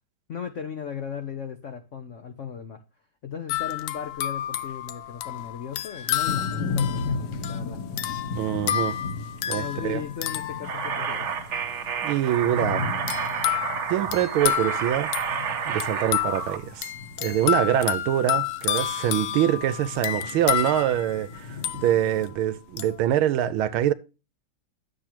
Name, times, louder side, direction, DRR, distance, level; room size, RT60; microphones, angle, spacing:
voice 1, 0.3-2.8 3.2-7.8 9.5-11.3, left 7 dB, 85° left, 0.6 m, -36 dB
sound 1, 3.5-11.4 13.1-22.3 22.8-23.0, left 12 dB, 70° left, 1.5 m, -30 dB
sound 2, 6.2-22.3, left 4 dB, 55° left, 1.5 m, -36 dB
voice 2, 8.3-9.0 9.5-10.0 12.0-12.9 13.9-15.1 15.7-16.9 17.2-23.9, right 11 dB, 75° right, 1.4 m, -24 dB
sound 3, 10.6-16.6, right 7 dB, 60° right, 0.8 m, -30 dB
10.0 x 7.6 x 2.9 m
omnidirectional pair, 2.4 m